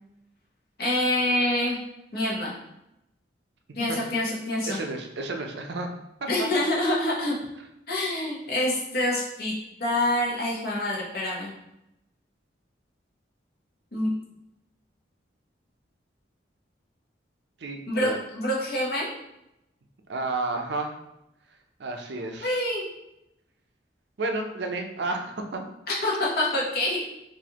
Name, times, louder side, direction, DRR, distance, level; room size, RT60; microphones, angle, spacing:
voice 1, 0.8-1.8 2.1-2.5 3.7-4.8 6.3-7.3 7.9-9.5 9.8-11.5 13.9-14.1 17.9-19.1 22.4-22.9 26.0-27.0, left 1 dB, 55° left, -5 dB, 1.0 m, -26 dB
voice 2, 4.6-5.9 6.2-6.5 17.6-18.2 20.1-21.0 21.8-22.6 24.2-25.6, right 2 dB, 65° right, 3 dB, 0.5 m, -31 dB
4.1 x 2.5 x 2.9 m, 0.85 s
head